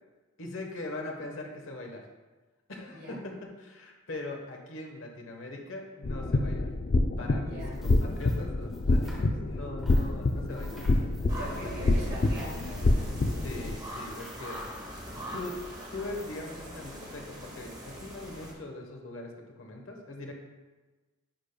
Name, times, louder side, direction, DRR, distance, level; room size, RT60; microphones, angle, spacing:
voice 1, 0.4-2.0 2.7-6.7 7.2-10.8 11.4-11.7 13.3-14.6 15.3-15.6 15.9-20.3, left 2 dB, 70° left, 2 dB, 1.1 m, -41 dB
voice 2, 2.9-3.2 7.4-7.8 11.4-13.1, right 2 dB, 45° right, -7 dB, 1.6 m, -43 dB
sound 1, 6.0-13.7, left 2 dB, 45° left, 0.4 m, -27 dB
sound 2, 7.6-9.5 9.8-16.3, equal, 5° right, 1.4 m, -52 dB
sound 3, 11.3-18.5, equal, 20° right, 1.0 m, -42 dB
10.0 x 5.1 x 2.2 m, 1.2 s
head